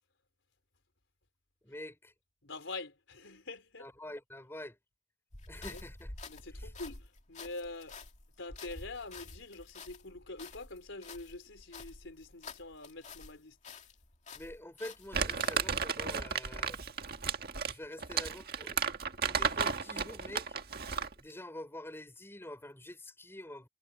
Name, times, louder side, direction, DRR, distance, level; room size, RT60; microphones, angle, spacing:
voice 1, 1.6-2.1 3.8-4.8 5.5-6.1 6.6-6.7 14.3-16.8 17.6-18.8 19.2-20.5 21.2-23.7, left 1 dB, 10° left, 5.3 m, -46 dB
voice 2, 2.4-3.9 5.7-5.8 6.3-8.0 8.4-13.6, left 2 dB, 70° left, 4.4 m, -45 dB
sound 1, 5.3-13.4 13.6-15.6, left 3 dB, 35° left, 2.4 m, -49 dB
Crumpling crinkling, 15.1-21.2, right 6 dB, 50° right, 1.7 m, -33 dB
head